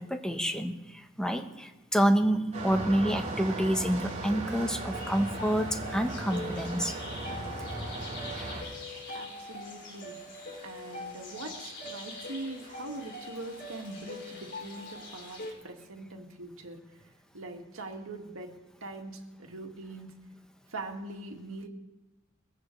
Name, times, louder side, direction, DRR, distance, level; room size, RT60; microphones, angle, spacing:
voice 1, 0.0-7.0 8.3-8.6, equal, 5° left, 5 dB, 1.1 m, -28 dB
sound 1, 2.5-8.6, right 2 dB, 35° right, 5.0 m, -37 dB
sound 2, 4.9-15.5, left 1 dB, 55° left, 4.3 m, -42 dB
voice 2, 9.1-10.2 10.6-16.8 17.3-18.5 18.8-20.1 20.7-21.7, right 2 dB, 80° right, 2 dB, 2.1 m, -42 dB
22.5 x 15.5 x 3.4 m, 1.0 s
head